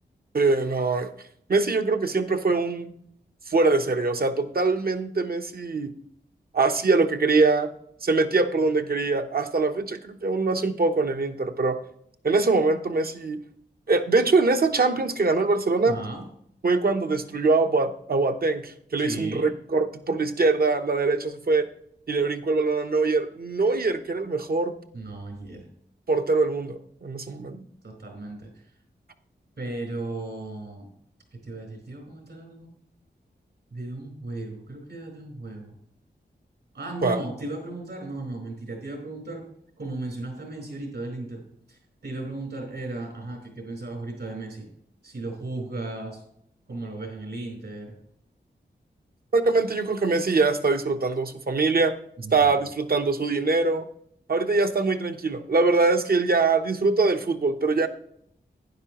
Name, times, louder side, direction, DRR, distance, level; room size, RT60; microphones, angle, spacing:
voice 1, 0.3-1.1 1.5-2.9 3.5-5.9 6.5-7.7 8.0-11.8 12.2-13.4 13.9-16.0 16.6-21.7 22.1-24.7 26.1-27.6 37.0-37.2 49.3-51.9 52.3-53.9 54.3-57.9, right 3 dB, 55° right, 7 dB, 0.8 m, -23 dB
voice 2, 15.9-16.2 19.0-19.5 24.9-25.7 27.8-28.5 29.6-30.9 31.3-32.7 33.7-35.7 36.7-39.4 39.8-41.4 41.7-44.7 45.0-46.2 46.7-47.9 52.2-52.6, right 2 dB, 70° right, 1 dB, 4.4 m, -35 dB
12.0 x 9.8 x 2.9 m, 0.69 s
cardioid pair, 55°, 19 cm